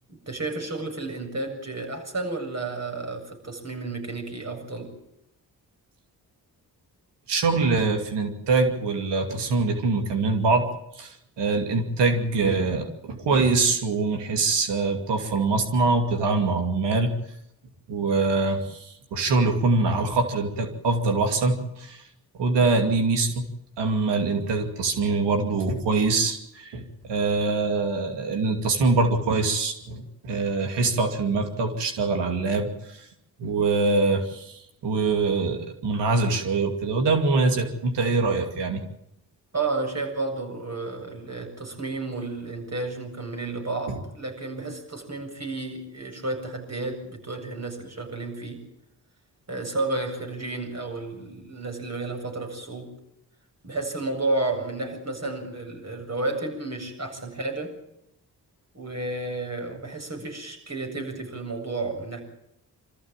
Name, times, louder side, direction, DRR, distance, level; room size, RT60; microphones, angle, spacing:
voice 1, 0.1-4.9 39.5-48.6 49.5-52.9 53.6-57.7 58.7-62.2, right 2 dB, 40° right, 3 dB, 7.9 m, -32 dB
voice 2, 7.3-10.7 10.9-17.1 17.9-22.1 22.4-23.5 23.8-33.1 33.4-38.8 43.9-44.0, right 3 dB, 90° right, 6 dB, 2.6 m, -24 dB
25.0 x 14.0 x 9.0 m, 0.80 s
supercardioid pair, 50°, 41 cm